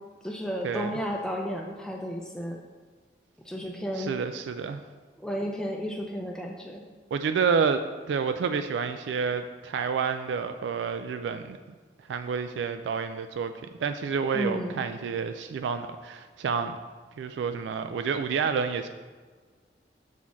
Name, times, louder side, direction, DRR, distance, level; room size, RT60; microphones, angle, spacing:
voice 1, 0.2-2.6 3.5-4.1 5.2-6.8 14.3-14.8, equal, 5° left, 0 dB, 0.4 m, -32 dB
voice 2, 3.9-4.8 7.1-11.6 12.1-13.5 13.8-16.8 17.2-18.9, right 6 dB, 85° right, 9 dB, 0.3 m, -29 dB
7.2 x 4.2 x 4.5 m, 1.5 s
head